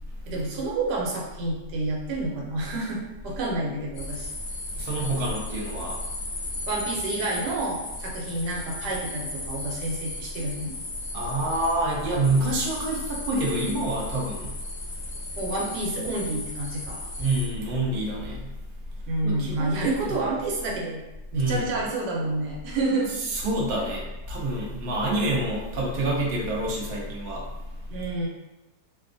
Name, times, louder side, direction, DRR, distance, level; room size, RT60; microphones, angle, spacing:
voice 1, 0.3-4.3 6.7-10.7 15.4-17.1 19.1-21.0 21.3-23.2 27.9-28.3, right 2 dB, 85° right, -2 dB, 1.2 m, -29 dB
sound 1, 3.9-17.5, left 2 dB, 65° left, 0.7 m, -36 dB
voice 2, 4.7-6.0 11.1-14.6 17.2-18.5 19.2-20.1 21.3-21.7 23.3-27.4, right 1 dB, 60° right, -3 dB, 0.5 m, -27 dB
2.8 x 2.3 x 2.5 m, 1.0 s
omnidirectional pair, 1.8 m